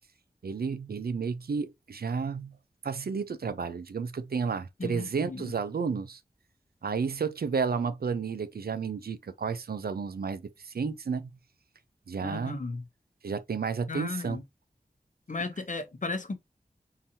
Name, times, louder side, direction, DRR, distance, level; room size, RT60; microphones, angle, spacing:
voice 1, 0.4-2.5 2.8-6.2 6.8-11.3 12.1-12.6 13.2-14.4, right 5 dB, 80° right, 0.4 m, -32 dB
voice 2, 4.8-5.5 12.2-12.8 13.9-14.4 15.3-16.4, left 3 dB, 55° left, 0.7 m, -35 dB
3.8 x 2.7 x 2.8 m
wide cardioid pair, 60°, 16 cm